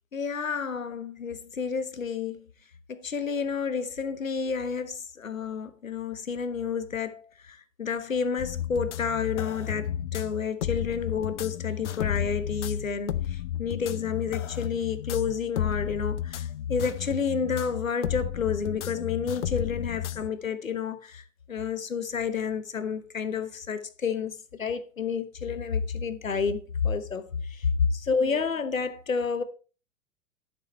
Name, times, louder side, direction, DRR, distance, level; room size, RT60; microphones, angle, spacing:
voice 1, 0.1-2.4 2.9-21.2 21.5-29.4, left 6 dB, 80° left, 1.3 m, -30 dB
sound 1, 8.4-20.3, left 10 dB, 60° left, 0.8 m, -32 dB
11.5 x 6.7 x 4.4 m
figure-of-eight pair, 100°, 40 cm